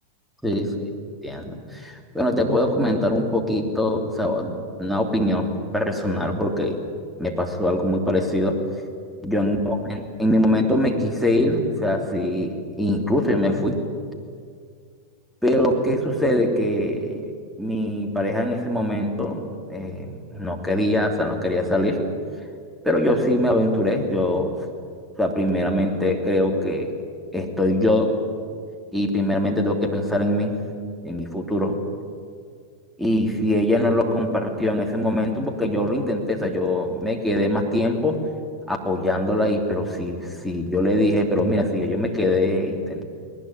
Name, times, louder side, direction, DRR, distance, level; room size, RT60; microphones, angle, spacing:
voice 1, 1.2-6.8 7.2-8.6 9.2-13.8 15.4-17.2 17.6-22.0 22.8-24.5 25.2-26.9 27.3-28.2 28.9-30.6 31.0-31.8 33.0-38.2 38.7-43.1, left 1 dB, ahead, 3 dB, 3.2 m, -23 dB
20.5 x 20.0 x 10.0 m, 2.2 s
figure-of-eight pair, 90°, 0 cm